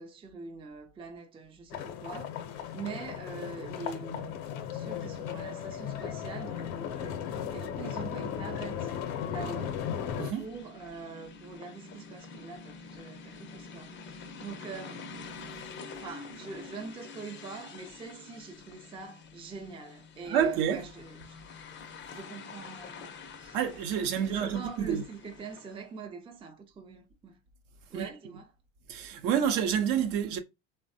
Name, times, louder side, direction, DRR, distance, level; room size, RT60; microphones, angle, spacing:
voice 1, 0.0-4.3 4.7-7.2 7.5-8.9 9.2-9.9 10.4-15.1 16.0-21.4 22.1-23.6 24.1-27.4 27.9-28.5, right 4 dB, 15° right, 0.5 m, -44 dB
sound 1, 1.7-10.3, left 9 dB, 65° left, 0.7 m, -36 dB
sound 2, 9.4-25.9, left 4 dB, 30° left, 0.6 m, -47 dB
voice 2, 10.2-10.5 20.3-20.8 23.5-25.0 27.9-28.1 28.9-30.4, right 8 dB, 55° right, 0.7 m, -28 dB
3.3 x 2.2 x 2.6 m
hypercardioid pair, 95°, 40 cm